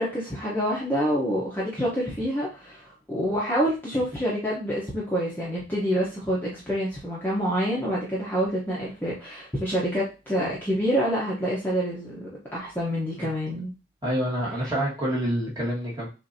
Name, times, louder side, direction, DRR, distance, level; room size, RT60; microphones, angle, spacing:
voice 1, 0.0-13.7, equal, 10° left, -6 dB, 0.9 m, -27 dB
voice 2, 14.0-16.1, equal, 20° right, -6 dB, 1.7 m, -27 dB
6.1 x 2.6 x 2.7 m, 0.31 s
head